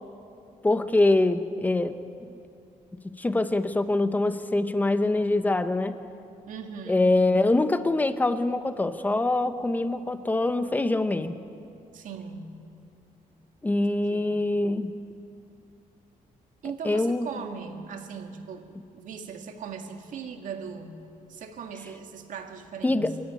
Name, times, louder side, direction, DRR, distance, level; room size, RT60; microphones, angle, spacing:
voice 1, 0.6-2.0 3.2-5.9 6.9-11.4 13.6-15.0 16.8-17.3 22.8-23.1, left 2 dB, 10° left, 10 dB, 0.8 m, -24 dB
voice 2, 6.5-7.0 11.9-12.7 14.1-14.4 16.6-21.0 21.3-23.2, right 6 dB, 65° right, 5 dB, 2.0 m, -39 dB
25.5 x 14.5 x 9.5 m, 2.6 s
cardioid pair, 165°, 14 cm